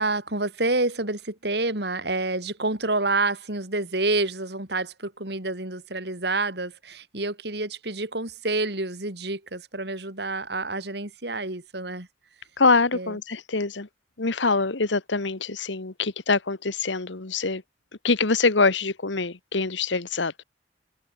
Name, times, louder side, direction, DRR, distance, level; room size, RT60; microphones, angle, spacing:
voice 1, 0.0-12.1 12.9-13.2, right 2 dB, 65° right, 3.8 m, -28 dB
voice 2, 12.6-13.9 14.2-17.6 18.0-20.3, left 4 dB, 85° left, 1.5 m, -24 dB
head